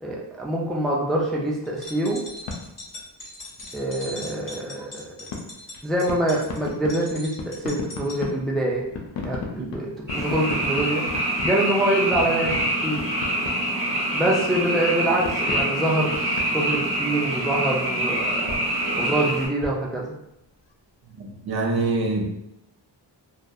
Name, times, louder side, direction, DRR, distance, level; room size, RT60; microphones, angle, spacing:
voice 1, 0.0-2.2 3.7-5.4 5.8-8.8 9.2-11.0 11.4-12.6 12.8-13.0 14.1-18.6 19.0-20.1, right 1 dB, ahead, -3 dB, 0.3 m, -25 dB
sound 1, 1.7-8.2, left 1 dB, 45° left, 0.8 m, -40 dB
sound 2, 2.4-3.1 3.3-4.1 5.1-14.6 15.2-17.7 18.4-20.8, left 3 dB, 80° left, 0.5 m, -37 dB
Frog, 10.1-19.5, right 1 dB, 30° left, 1.2 m, -25 dB
voice 2, 21.2-22.3, right 3 dB, 60° right, 1 dB, 0.5 m, -25 dB
2.6 x 2.1 x 2.2 m, 0.83 s
wide cardioid pair, 95°, 43 cm